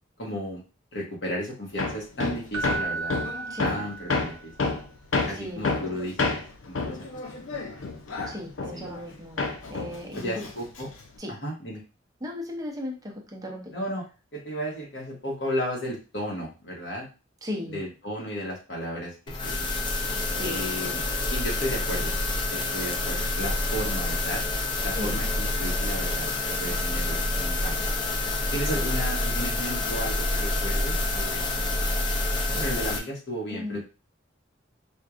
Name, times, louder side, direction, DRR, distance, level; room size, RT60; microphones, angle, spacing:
voice 1, 0.2-0.6 0.9-3.1 3.6-4.7 5.3-7.0 7.3-7.4 8.7-8.9 10.2-10.9 11.4-11.8 13.7-14.0 14.3-17.1 17.7-19.6 20.4-21.0 21.3-22.1 22.5-24.4 24.8-27.7 28.5-31.8 32.5-33.8, equal, 65° left, -2 dB, 1.3 m, -34 dB
Hammer, 1.8-9.1 9.4-11.1, left 3 dB, 90° left, 0.6 m, -30 dB
Keyboard (musical), 2.5-4.5 7.7-7.9, right 3 dB, 85° right, 0.5 m, -34 dB
voice 2, 3.5-3.9 5.4-5.9 8.3-9.4 9.7-10.5 11.2-11.4 12.2-13.7 17.4-17.8 20.3-20.6 24.9-25.2 28.8-28.9 33.5-33.8, left 1 dB, 20° right, 0 dB, 0.6 m, -36 dB
sound 1, 19.3-33.0, left 2 dB, 25° left, 0.5 m, -27 dB
4.5 x 2.5 x 2.5 m, 0.32 s
head